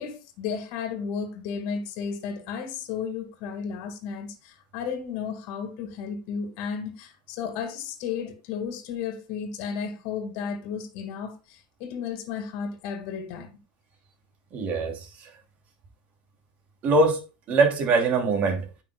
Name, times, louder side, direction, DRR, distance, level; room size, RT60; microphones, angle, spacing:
voice 1, 0.0-13.5, left 6 dB, 60° left, 2.1 m, -33 dB
voice 2, 14.5-15.0 16.8-17.2 17.5-18.6, right 3 dB, 40° right, 2.9 m, -22 dB
9.9 x 5.8 x 2.3 m
supercardioid pair, 135°, 4 cm